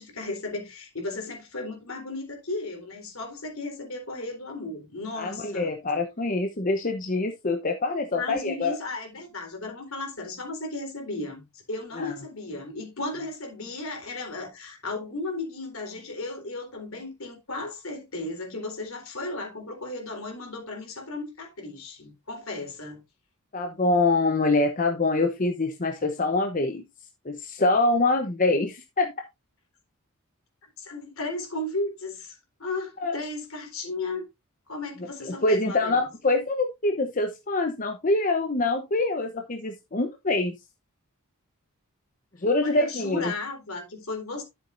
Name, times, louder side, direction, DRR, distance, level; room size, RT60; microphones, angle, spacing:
voice 1, 0.0-5.7 8.1-23.0 30.8-34.3 34.7-36.1 42.6-44.4, left 2 dB, 70° left, 3.8 m, -35 dB
voice 2, 5.2-8.8 12.0-12.1 23.5-26.8 27.2-29.1 33.0-33.2 35.3-40.5 42.4-43.3, left 2 dB, 40° left, 0.9 m, -25 dB
12.0 x 7.1 x 2.6 m
head